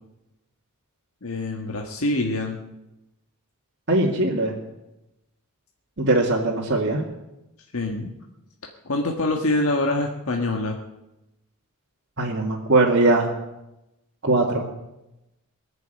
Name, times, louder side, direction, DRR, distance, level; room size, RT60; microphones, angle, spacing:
voice 1, 1.2-2.6 7.7-8.1 8.8-10.8, left 2 dB, 70° left, 1 dB, 1.6 m, -25 dB
voice 2, 3.9-4.6 6.0-7.0 12.2-13.3 14.2-14.7, right 2 dB, 50° right, -3 dB, 2.3 m, -20 dB
21.5 x 7.4 x 9.1 m, 0.94 s
head